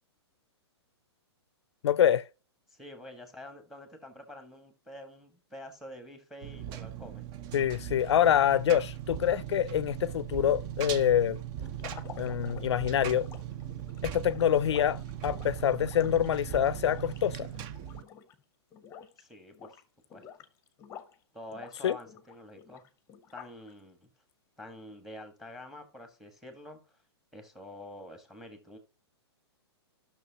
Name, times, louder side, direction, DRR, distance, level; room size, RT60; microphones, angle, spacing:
voice 1, 1.8-2.2 7.5-11.4 12.2-13.3 14.0-17.5 21.8-22.0, left 10 dB, 75° left, 0.4 m, -26 dB
voice 2, 2.7-7.3 19.2-19.8 20.1-20.3 21.3-22.8 23.3-24.1 24.6-27.0 27.3-28.8, left 1 dB, ahead, 1.4 m, -47 dB
Engine, 6.4-18.0, right 11 dB, 30° right, 0.5 m, -39 dB
sound 1, 11.7-18.4 18.7-19.2 19.5-21.2 21.5-23.7, left 8 dB, 20° left, 0.8 m, -50 dB
12.0 x 6.2 x 2.8 m
hypercardioid pair, 140°, 14 cm